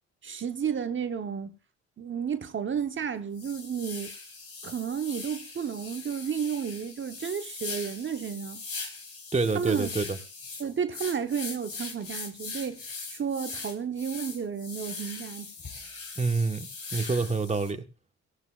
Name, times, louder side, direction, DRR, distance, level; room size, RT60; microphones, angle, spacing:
voice 1, 0.2-1.5 2.0-4.1 4.6-8.6 9.5-9.9 10.6-15.5, right 7 dB, 40° right, 1.1 m, -32 dB
sound 1, 2.7-2.9 3.3-17.7, left 4 dB, 50° left, 4.5 m, -40 dB
voice 2, 9.3-10.2 16.2-16.7 16.9-17.8, right 4 dB, 20° right, 1.3 m, -27 dB
17.5 x 15.0 x 2.5 m
cardioid pair, 90°, 30 cm